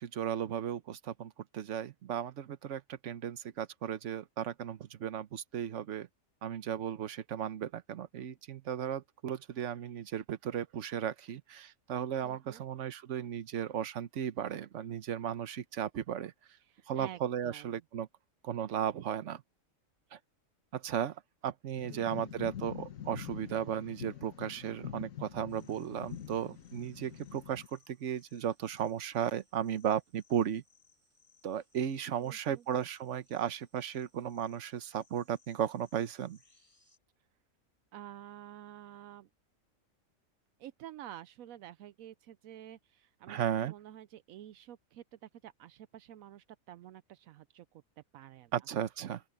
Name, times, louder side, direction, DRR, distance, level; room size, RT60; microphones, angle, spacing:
voice 1, 0.0-6.1 6.4-16.3 16.9-18.1 18.4-19.4 20.1-20.2 20.7-30.6 31.4-36.4 43.3-43.7 48.5-49.2, right 9 dB, 65° right, 1.2 m, -35 dB
voice 2, 12.2-12.6 16.6-17.7 32.1-32.6 37.9-39.3 40.6-47.8 48.1-48.6, right 12 dB, 80° right, 1.0 m, -50 dB
sound 1, 21.8-27.7, left 10 dB, 75° left, 1.7 m, -45 dB
sound 2, 25.5-37.0, left 4 dB, 20° right, 5.9 m, -69 dB
open air
omnidirectional pair, 1.4 m